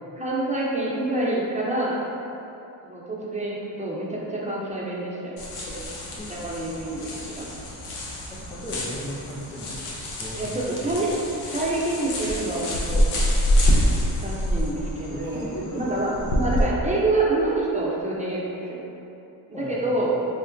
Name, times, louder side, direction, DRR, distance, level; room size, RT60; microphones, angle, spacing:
voice 1, 0.2-2.0 2.8-5.3 6.3-7.5 10.4-11.1 11.3-13.0 13.9-15.5 15.7-16.1 16.4-18.9 19.5-20.1, right 2 dB, 15° right, -5 dB, 0.7 m, -27 dB
sound 1, 5.4-16.7, equal, 85° left, 0.6 m, -26 dB
voice 2, 8.2-11.0 15.1-16.6 19.5-20.1, equal, 10° left, -7 dB, 0.3 m, -37 dB
3.7 x 2.0 x 2.6 m, 2.8 s
supercardioid pair, 50°, 49 cm